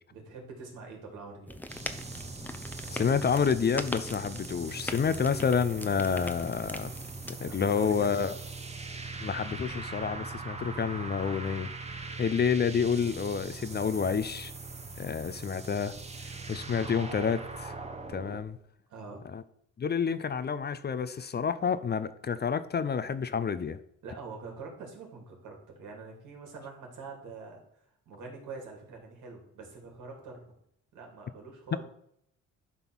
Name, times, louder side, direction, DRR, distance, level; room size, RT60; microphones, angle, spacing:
voice 1, 0.1-1.6 7.4-8.4 18.9-19.2 24.0-27.6 28.1-30.5 30.9-31.8, right 4 dB, 80° right, 2.9 m, -45 dB
sound 1, 1.5-7.3, left 1 dB, 5° left, 0.8 m, -41 dB
sound 2, 1.7-18.4, right 4 dB, 20° right, 1.2 m, -41 dB
voice 2, 2.9-6.9 7.4-8.3 9.2-11.7 12.2-14.5 15.0-15.9 16.2-17.8 18.1-18.6 19.2-19.4 19.8-23.8, left 6 dB, 35° left, 0.6 m, -29 dB
11.0 x 3.8 x 6.2 m
cardioid pair, 90°, 30 cm